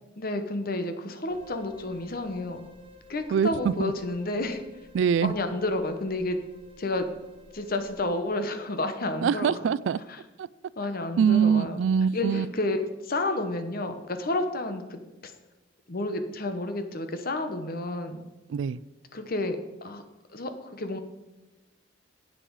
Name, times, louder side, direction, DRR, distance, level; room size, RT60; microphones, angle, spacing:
voice 1, 0.2-2.6 3.1-4.6 5.2-6.4 6.8-7.1 7.5-9.6 10.1-10.2 10.8-11.8 12.1-15.3 15.9-18.2 19.1-20.0 20.3-21.0, left 2 dB, 50° left, 8 dB, 1.0 m, -30 dB
sound 1, 1.3-8.2, left 2 dB, 30° right, 1.1 m, -53 dB
voice 2, 3.3-3.9 4.9-5.3 9.2-10.0 10.4-10.5 11.2-12.5 18.5-18.8, right 7 dB, 70° right, 20 dB, 0.3 m, -23 dB
10.0 x 7.7 x 4.7 m, 1.1 s
head